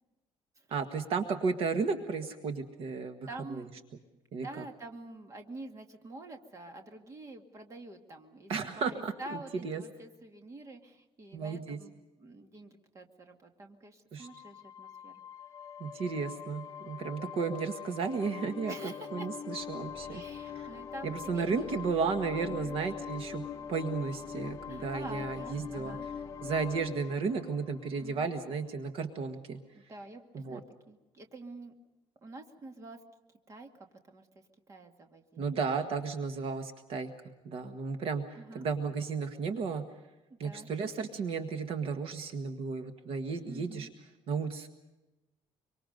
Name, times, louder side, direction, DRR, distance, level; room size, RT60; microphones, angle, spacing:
voice 1, 0.7-3.6 4.3-4.5 8.5-9.8 11.3-11.8 14.1-14.3 15.8-20.2 20.5-20.7 21.0-26.0 26.4-29.6 30.3-30.6 35.4-37.1 37.4-38.2 38.5-39.8 40.4-43.9 44.3-44.7, right 5 dB, 55° right, 7 dB, 1.6 m, -34 dB
voice 2, 3.3-3.7 4.4-11.9 12.2-15.2 18.7-19.3 20.1-21.7 21.9-22.1 22.5-22.8 24.7-26.1 28.0-28.3 29.7-31.7 32.2-33.0 33.5-34.3 34.7-35.6 38.4-38.7 40.3-40.7 43.5-43.9, right 2 dB, 25° right, 5 dB, 2.0 m, -47 dB
sound 1, 14.2-28.6, left 7 dB, 25° left, 1.0 m, -43 dB
25.0 x 24.5 x 5.3 m, 1.0 s
cardioid pair, 175°, 11 cm